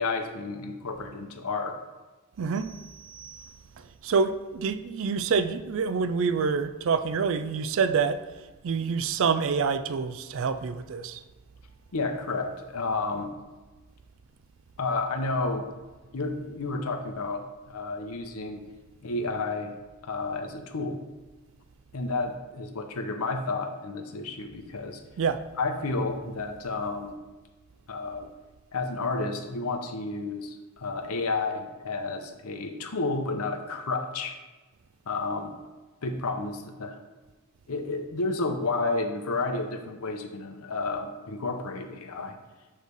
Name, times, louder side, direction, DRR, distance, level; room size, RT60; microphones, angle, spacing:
voice 1, 0.0-1.8 11.9-13.3 14.8-15.7 16.1-18.6 19.0-19.7 20.0-21.0 21.9-25.0 25.6-27.2 27.9-28.3 28.7-34.4 35.1-35.5 36.0-37.0 37.7-42.4, left 3 dB, 75° left, 5 dB, 0.7 m, -31 dB
voice 2, 2.4-2.7 4.0-8.2 8.6-11.2 25.2-25.4, right 5 dB, 60° right, 11 dB, 0.4 m, -26 dB
sound 1, 2.5-4.1, right 7 dB, 20° right, 1.7 m, -50 dB
6.4 x 3.2 x 5.2 m, 1.2 s
head